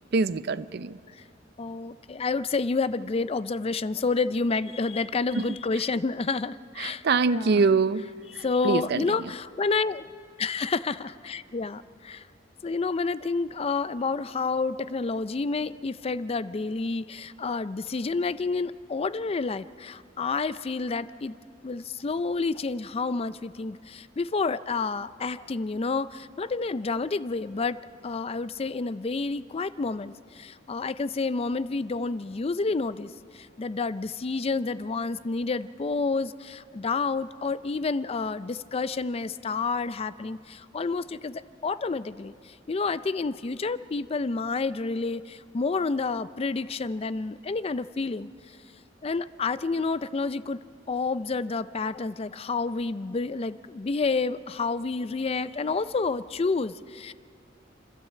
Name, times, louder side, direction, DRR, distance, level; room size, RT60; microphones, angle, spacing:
voice 1, 0.1-1.0 5.4-5.5 6.8-8.1 8.6-9.1, right 4 dB, 60° right, 0.5 m, -24 dB
voice 2, 1.6-7.7 8.4-10.0 10.4-12.2 12.6-21.3 21.6-27.8 28.0-42.3 42.7-48.3 49.0-50.6 50.9-57.1, left 4 dB, 30° left, 0.4 m, -29 dB
29.0 x 12.5 x 7.5 m
head